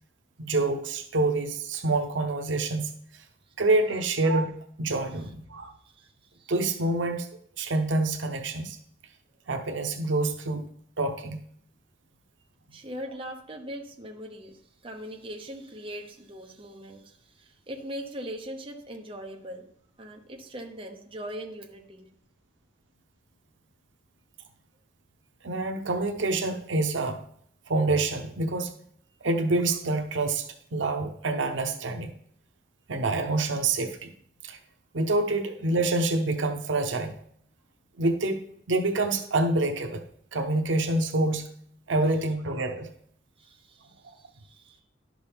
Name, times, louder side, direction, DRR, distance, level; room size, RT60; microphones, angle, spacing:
voice 1, 0.4-2.9 3.6-5.7 6.5-7.3 7.6-8.8 9.5-10.7 11.0-11.4 25.4-27.2 27.7-28.7 29.2-32.1 32.9-34.1 34.4-34.6 34.9-37.1 38.0-40.0 40.3-41.5 41.9-42.9 44.0-44.1, right 2 dB, 80° right, 4 dB, 0.8 m, -27 dB
voice 2, 5.8-6.5 12.7-19.7 20.0-22.1 43.4-44.8, equal, 30° right, 2 dB, 1.0 m, -41 dB
11.0 x 6.2 x 3.6 m, 0.66 s
head